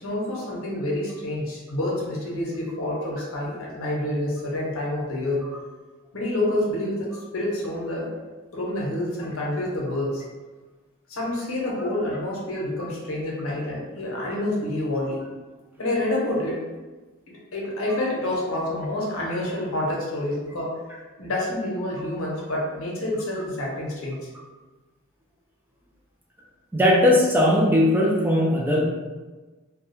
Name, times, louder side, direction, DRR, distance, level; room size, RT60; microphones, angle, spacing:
voice 1, 0.0-5.5 6.1-8.1 8.5-10.2 11.1-15.2 15.8-16.6 17.5-20.7 21.2-24.2, left 1 dB, 75° left, -4 dB, 0.7 m, -28 dB
voice 2, 26.7-28.9, left 1 dB, 10° right, -3 dB, 0.3 m, -19 dB
2.2 x 2.1 x 2.9 m, 1.3 s
head